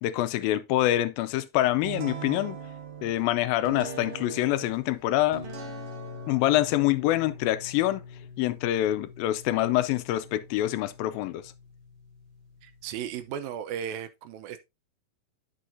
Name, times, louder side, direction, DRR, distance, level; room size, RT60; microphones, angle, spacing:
voice 1, 0.0-2.6 3.0-5.5 6.3-8.0 8.4-11.4, left 14 dB, 85° left, 2.4 m, -25 dB
sound 1, 1.8-13.3, right 2 dB, 50° right, 1.9 m, -42 dB
voice 2, 12.6-14.6, right 9 dB, 85° right, 2.6 m, -35 dB
10.0 x 6.3 x 2.7 m
omnidirectional pair, 4.1 m